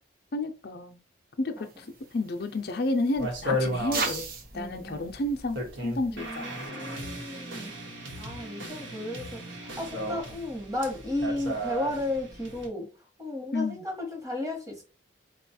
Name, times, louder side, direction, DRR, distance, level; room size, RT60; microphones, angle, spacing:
voice 1, 0.3-1.0 1.4-1.9 2.1-4.3 4.5-6.5 13.5-13.8, left 2 dB, 50° left, 0.5 m, -31 dB
voice 2, 1.6-1.9 4.5-5.2 6.1-7.8 8.2-14.8, left 1 dB, 15° right, 1.1 m, -34 dB
sound 1, 1.6-6.7, right 4 dB, 45° right, 0.7 m, -39 dB
sound 2, 3.2-12.7, equal, 75° right, 1.1 m, -35 dB
4.1 x 2.3 x 4.2 m
head